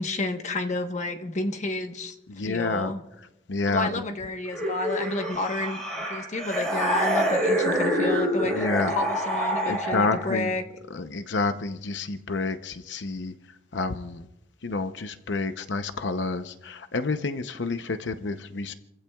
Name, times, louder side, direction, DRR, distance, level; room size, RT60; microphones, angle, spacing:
voice 1, 0.0-2.1 2.4-3.0 3.6-8.6 9.0-10.6, left 2 dB, 40° left, 5 dB, 1.1 m, -30 dB
voice 2, 2.3-4.0 8.4-8.9 9.6-10.6 10.9-14.3 14.6-18.7, left 3 dB, 85° left, 9 dB, 0.7 m, -29 dB
sound 1, 4.5-10.4, equal, 5° left, 4.7 m, -26 dB
30.0 x 15.5 x 2.3 m, 0.92 s
head